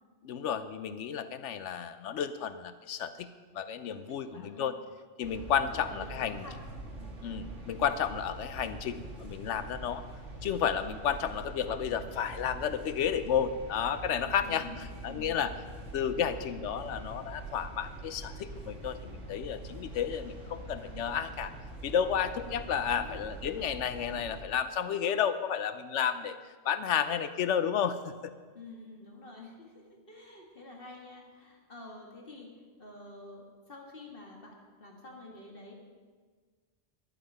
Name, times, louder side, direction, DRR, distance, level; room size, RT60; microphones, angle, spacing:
voice 1, 0.2-3.3 3.5-4.8 5.2-6.4 7.2-10.0 10.4-14.7 15.0-15.5 15.9-21.5 21.8-26.4 26.6-28.3, left 8 dB, 75° left, 12 dB, 0.9 m, -32 dB
voice 2, 3.9-4.7 5.7-6.6 7.0-7.2 14.4-15.5 22.8-23.3 28.5-32.5 32.8-35.7, left 2 dB, 50° left, 0 dB, 2.0 m, -49 dB
sound 1, 5.2-24.4, right 2 dB, 75° right, 2.2 m, -44 dB
12.0 x 11.0 x 5.5 m, 1.5 s
omnidirectional pair, 1.2 m